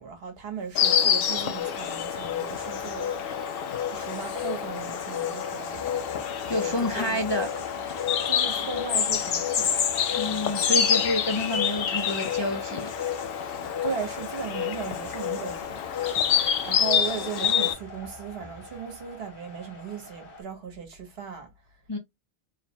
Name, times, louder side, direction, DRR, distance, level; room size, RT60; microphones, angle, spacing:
voice 1, 0.0-3.4 3.7-5.9 6.4-7.2 8.2-9.8 13.8-21.5, right 6 dB, 70° right, 1.1 m, -37 dB
Insect, 0.8-17.7, left 8 dB, 70° left, 0.7 m, -27 dB
sound 1, 1.6-20.4, left 1 dB, 50° left, 1.2 m, -43 dB
voice 2, 6.5-7.5 10.2-12.9 21.9-22.0, left 1 dB, 35° left, 0.5 m, -28 dB
3.2 x 2.0 x 2.7 m
omnidirectional pair, 1.1 m